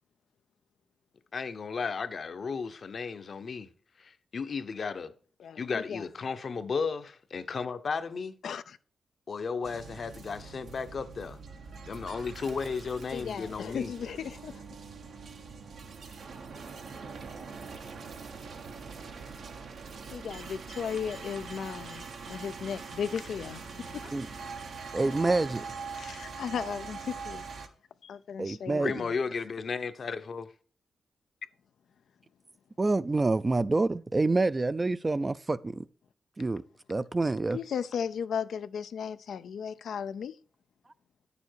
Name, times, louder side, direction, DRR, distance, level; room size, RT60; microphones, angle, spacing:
voice 1, 1.3-3.7 4.0-5.1 5.6-8.3 9.3-11.4 11.9-13.9 28.8-30.5, left 5 dB, 55° left, 0.8 m, -34 dB
voice 2, 5.4-6.0 8.4-8.8 13.1-14.6 20.1-23.6 26.0-27.5 28.0-29.1 37.5-40.4, left 7 dB, 85° left, 0.4 m, -36 dB
sound 1, 9.6-27.7, right 5 dB, 80° right, 1.2 m, -43 dB
voice 3, 24.9-25.6 28.4-28.9 32.8-35.9 36.4-36.6 36.9-37.6, right 3 dB, 25° right, 0.4 m, -27 dB
9.6 x 7.0 x 4.5 m
cardioid pair, 95°, 0 cm